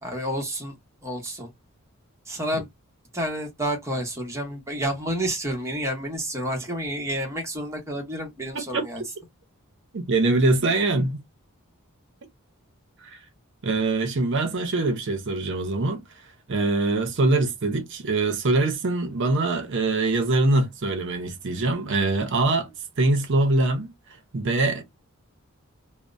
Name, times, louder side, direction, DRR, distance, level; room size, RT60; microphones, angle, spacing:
voice 1, 0.0-0.7 1.0-1.5 2.3-2.7 3.1-9.0, right 1 dB, 15° right, 0.8 m, -29 dB
voice 2, 9.9-11.2 13.1-13.2 13.6-16.0 16.5-22.7 23.0-23.9 24.3-24.8, right 2 dB, 55° right, 0.6 m, -23 dB
2.8 x 2.0 x 2.4 m
head